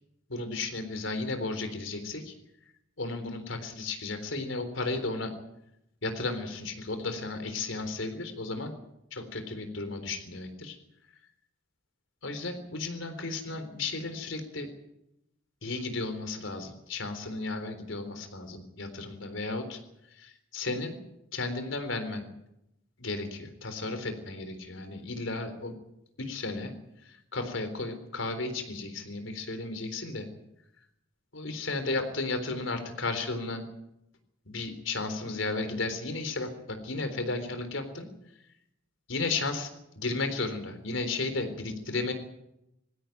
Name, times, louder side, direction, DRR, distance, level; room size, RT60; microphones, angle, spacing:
voice 1, 0.3-2.3 3.0-5.3 6.0-8.7 9.1-10.8 12.2-14.7 15.6-19.8 20.1-21.0 21.3-22.3 23.0-25.7 26.2-26.7 27.0-30.3 31.3-33.6 34.5-38.1 39.1-39.7 40.0-42.1, left 3 dB, 80° left, 8 dB, 3.9 m, -34 dB
20.5 x 16.0 x 9.4 m, 0.84 s
head